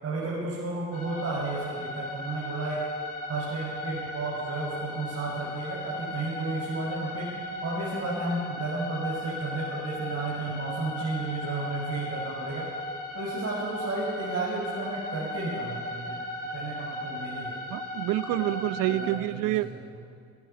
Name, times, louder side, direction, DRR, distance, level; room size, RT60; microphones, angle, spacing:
voice 1, 0.0-2.8 3.3-7.3 7.6-12.7 13.1-16.2 16.5-17.6 18.3-18.5 18.8-20.0, right 3 dB, 40° right, -5 dB, 7.0 m, -33 dB
sound 1, 0.9-19.1, left 1 dB, 60° left, 7.7 m, -36 dB
voice 2, 17.7-19.7, right 16 dB, 60° right, 15 dB, 0.8 m, -27 dB
22.0 x 21.0 x 6.0 m, 2.2 s
hypercardioid pair, 70°, 37 cm